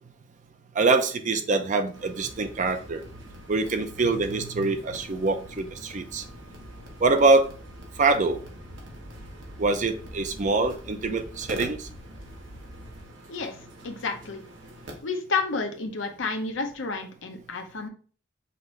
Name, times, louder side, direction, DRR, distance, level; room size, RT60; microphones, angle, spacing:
voice 1, 0.8-3.0 3.5-6.2 7.0-7.5 8.0-8.4 9.6-11.8, right 3 dB, 40° right, 8 dB, 0.5 m, -24 dB
sound 1, 1.9-15.0, equal, 75° right, 1.2 m, -46 dB
sound 2, 2.3-13.0, equal, 5° left, 0.6 m, -47 dB
voice 2, 13.8-14.4 15.0-17.9, left 4 dB, 75° left, 4 dB, 0.7 m, -30 dB
5.8 x 2.6 x 3.1 m, 0.40 s
head